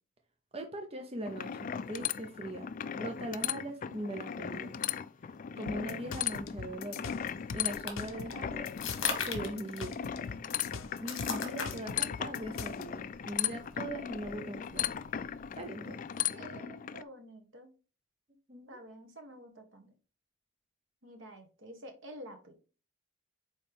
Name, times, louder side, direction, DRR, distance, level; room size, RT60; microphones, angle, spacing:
voice 1, 0.5-4.8 5.6-7.0 7.5-8.7 9.2-10.0 11.0-14.9 15.6-16.0 18.5-18.8, right 1 dB, 30° right, 4 dB, 0.7 m, -40 dB
sound 1, 1.3-17.0, left 9 dB, 40° left, 0.3 m, -37 dB
sound 2, 5.7-12.8, left 5 dB, 90° left, 0.5 m, -42 dB
sound 3, 7.2-15.6, left 5 dB, 75° left, 1.5 m, -42 dB
voice 2, 16.3-17.7 18.7-19.9 21.0-22.5, right 1 dB, 70° right, 4 dB, 1.5 m, -49 dB
8.5 x 3.2 x 3.5 m, 0.35 s
head